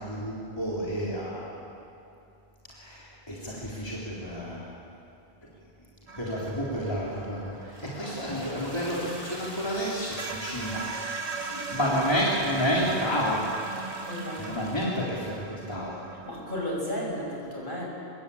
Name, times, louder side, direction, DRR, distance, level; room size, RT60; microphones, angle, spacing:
voice 1, 0.0-1.6 2.7-4.7 6.2-10.9 11.3-11.4 11.7-13.4 14.4-16.0, equal, 25° left, -6 dB, 3.7 m, -30 dB
sound 1, 6.1-9.5 9.8-9.9 10.2-16.9, right 4 dB, 40° right, 1.1 m, -39 dB
Toilet flush, 7.6-15.2, equal, 75° right, 4.5 m, -43 dB
voice 2, 11.4-12.2 14.0-14.5 16.2-17.9, left 1 dB, 55° left, -2 dB, 6.8 m, -34 dB
26.0 x 22.0 x 8.6 m, 2.7 s
omnidirectional pair, 1.1 m